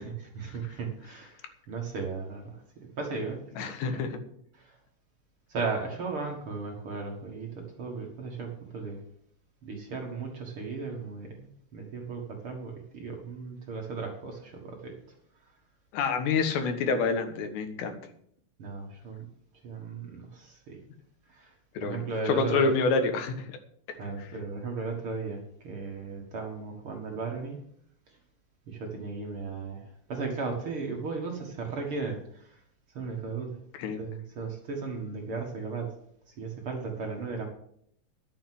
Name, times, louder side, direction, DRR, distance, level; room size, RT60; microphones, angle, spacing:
voice 1, 0.0-3.8 4.5-4.8 5.5-9.0 9.6-15.2 15.4-15.5 18.6-19.3 19.6-20.8 21.3-21.5 21.8-22.7 23.9-27.7 28.1-28.2 28.7-32.6 32.9-33.6 34.0-35.9 36.3-37.5, right 4 dB, 50° right, 0 dB, 1.7 m, -36 dB
voice 2, 3.6-4.2 15.9-18.0 21.8-23.6 33.8-34.0, left 4 dB, 85° left, 7 dB, 3.5 m, -27 dB
11.0 x 7.8 x 7.6 m, 0.67 s
omnidirectional pair, 4.8 m